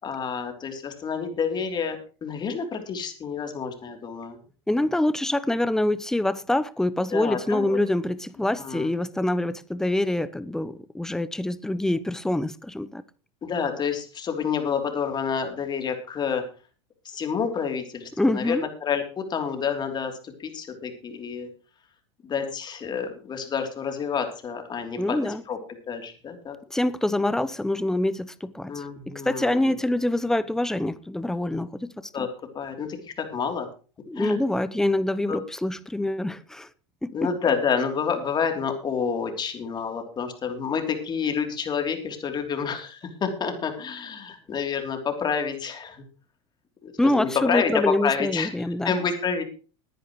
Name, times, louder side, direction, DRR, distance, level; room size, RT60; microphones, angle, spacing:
voice 1, 0.0-4.4 7.1-7.8 8.6-8.9 13.4-16.4 17.0-21.5 22.2-25.6 25.9-26.6 28.7-29.8 32.1-32.3 32.5-33.7 34.1-34.4 35.3-35.4 37.1-46.0 46.8-49.4, left 6 dB, 25° left, 3.2 m, -29 dB
voice 2, 4.7-13.0 18.2-18.7 25.0-25.4 26.7-32.3 34.1-36.7 37.0-37.1 47.0-49.0, left 1 dB, 5° left, 0.8 m, -25 dB
20.0 x 10.5 x 3.1 m
supercardioid pair, 120°, 16 cm